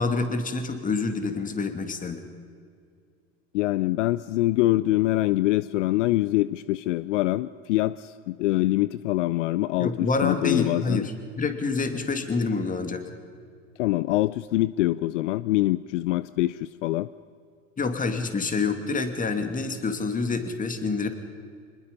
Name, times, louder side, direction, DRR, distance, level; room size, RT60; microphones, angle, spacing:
voice 1, 0.0-2.2 9.8-13.1 17.8-21.1, left 4 dB, 20° left, 7 dB, 2.5 m, -27 dB
voice 2, 3.5-11.1 13.8-17.1, left 17 dB, 65° left, 16 dB, 0.6 m, -24 dB
25.5 x 21.0 x 5.4 m, 2.3 s
hypercardioid pair, 100°, 39 cm